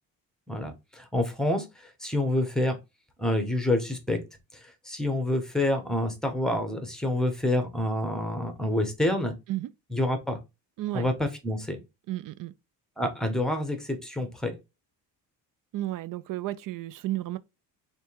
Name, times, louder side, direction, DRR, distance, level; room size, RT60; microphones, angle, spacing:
voice 1, 0.5-2.8 3.2-4.2 4.5-9.3 9.9-10.4 10.9-11.8 13.0-14.5, left 1 dB, ahead, 0.9 m, -28 dB
voice 2, 10.8-11.1 12.1-12.5 15.7-17.4, right 15 dB, 55° right, 0.4 m, -32 dB
3.4 x 2.9 x 4.4 m
cardioid pair, 115°, 39 cm